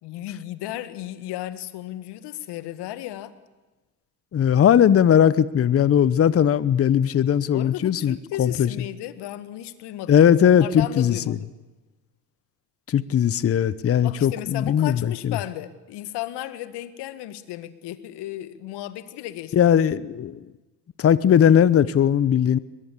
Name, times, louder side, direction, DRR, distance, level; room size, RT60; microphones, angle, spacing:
voice 1, 0.0-3.3 7.5-11.5 14.0-19.7, left 14 dB, 60° left, 12 dB, 2.0 m, -34 dB
voice 2, 4.3-8.7 10.1-11.3 12.9-15.4 19.5-20.4 21.0-22.6, left 9 dB, 30° left, 17 dB, 0.9 m, -19 dB
22.0 x 22.0 x 8.4 m, 1.2 s
hypercardioid pair, 70°, 46 cm